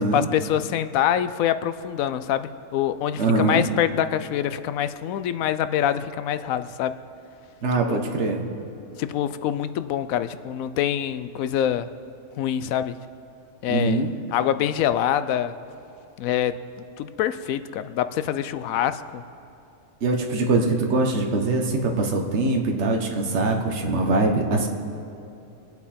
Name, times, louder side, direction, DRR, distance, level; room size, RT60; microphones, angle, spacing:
voice 1, 0.0-7.0 7.9-8.0 9.0-11.9 12.4-13.0 13.6-14.0 14.3-15.5 16.2-16.6 17.0-19.2, left 10 dB, 80° left, 13 dB, 1.0 m, -25 dB
voice 2, 3.2-3.7 7.6-8.5 13.7-14.1 20.0-24.7, right 3 dB, 55° right, 2 dB, 1.4 m, -23 dB
23.5 x 8.2 x 4.3 m, 2.8 s
omnidirectional pair, 1.4 m